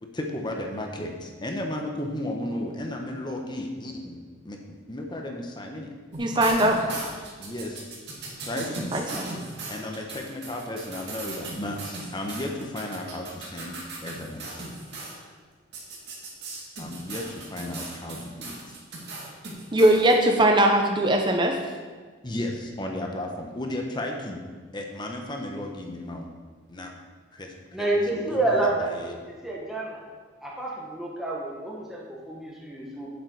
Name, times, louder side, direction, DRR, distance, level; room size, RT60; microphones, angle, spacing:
voice 1, 0.0-4.2 4.4-5.9 6.4-6.5 7.4-7.9 8.5-8.9 9.7-14.6 16.8-18.7 22.2-24.4 24.7-26.3 26.7-26.9 27.3-29.2, left 1 dB, 20° left, 2 dB, 0.9 m, -34 dB
sound 1, 6.1-15.2 15.7-20.1, right 2 dB, 55° right, 2.3 m, -38 dB
voice 2, 6.2-7.1 8.9-9.3 19.7-21.6, right 1 dB, 25° right, 2 dB, 0.7 m, -20 dB
voice 3, 27.7-28.9 29.3-30.0 30.4-33.1, right 2 dB, ahead, -5 dB, 1.3 m, -28 dB
9.6 x 7.9 x 4.6 m, 1.5 s
head